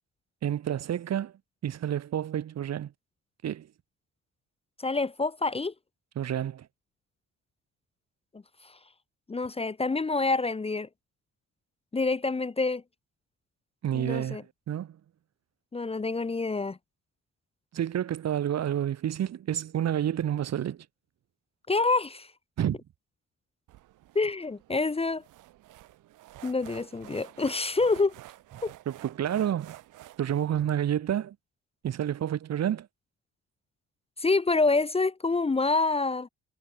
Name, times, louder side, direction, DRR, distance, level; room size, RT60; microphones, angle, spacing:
voice 1, 0.4-1.3 1.6-2.9 3.4-3.7 6.1-6.7 13.8-15.0 17.7-20.8 22.6-22.8 28.8-29.7 30.2-31.3 31.8-32.9, right 10 dB, 60° right, 1.7 m, -29 dB
voice 2, 4.8-5.7 9.3-10.9 11.9-12.8 13.9-14.4 15.7-16.8 21.7-22.3 24.1-25.2 26.4-28.1 28.6-28.7 34.2-36.3, left 3 dB, 20° left, 0.8 m, -27 dB
sound 1, 23.7-30.6, right 15 dB, 90° right, 6.3 m, -50 dB
cardioid pair, 90°, 30 cm